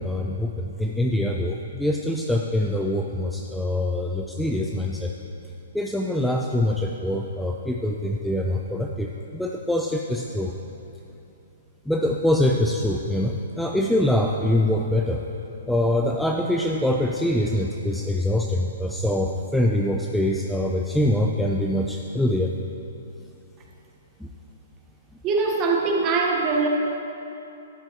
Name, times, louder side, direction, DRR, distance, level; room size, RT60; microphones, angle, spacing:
voice 1, 0.0-5.1 5.7-10.5 11.9-15.2 15.7-22.5 24.2-24.3, left 1 dB, ahead, 0 dB, 0.3 m, -24 dB
voice 2, 25.2-26.7, right 4 dB, 25° right, 0 dB, 1.0 m, -22 dB
11.5 x 9.5 x 2.8 m, 2.8 s
hypercardioid pair, 160°, 0 cm